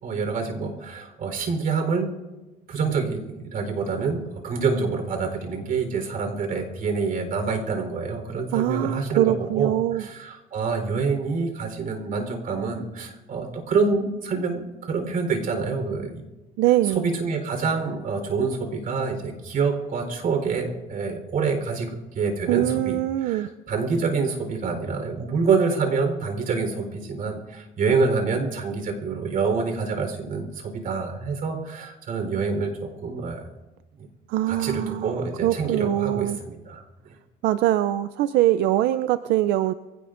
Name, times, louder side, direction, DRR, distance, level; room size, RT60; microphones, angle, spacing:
voice 1, 0.0-2.1 2.7-16.2 16.9-33.4 34.0-34.1 34.5-36.8, right 4 dB, 55° right, 5 dB, 4.0 m, -26 dB
voice 2, 8.5-10.0 16.6-17.1 22.5-23.5 34.3-35.2 35.4-36.4 37.4-39.7, right 14 dB, 90° right, 12 dB, 0.5 m, -23 dB
24.0 x 17.0 x 2.6 m, 1.1 s
cardioid pair, 110°, 17 cm